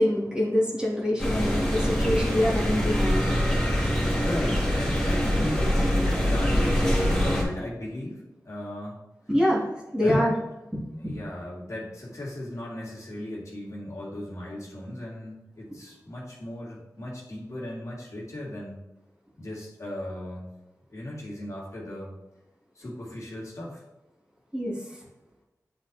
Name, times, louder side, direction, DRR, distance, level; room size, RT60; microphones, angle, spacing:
voice 1, 0.0-3.3 9.3-9.6 9.9-10.3 10.7-10.8 24.5-24.7, equal, 15° right, -6 dB, 2.2 m, -25 dB
sound 1, 1.2-7.4, equal, 10° left, 2.0 m, -24 dB
voice 2, 4.2-9.0 10.0-10.2 11.0-18.8 19.4-20.5 20.9-22.1 22.7-23.8, left 1 dB, 50° left, -5 dB, 2.1 m, -36 dB
9.4 x 4.3 x 2.8 m, 0.96 s
wide cardioid pair, 70°, 7 cm